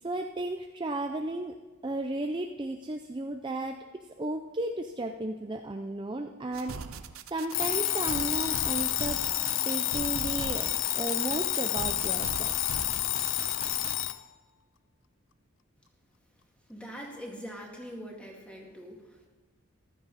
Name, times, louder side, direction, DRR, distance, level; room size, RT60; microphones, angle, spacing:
voice 1, 0.0-1.6 1.8-3.8 4.2-7.0 7.3-9.2 9.6-12.5, right 2 dB, 20° right, 4 dB, 0.5 m, -34 dB
sound 1, 6.5-14.0, right 5 dB, 80° right, 0.7 m, -41 dB
Alarm, 7.5-14.2, left 15 dB, 65° left, 0.5 m, -29 dB
voice 2, 16.7-19.3, equal, 5° left, -1 dB, 2.2 m, -43 dB
14.5 x 13.0 x 4.1 m, 1.3 s
head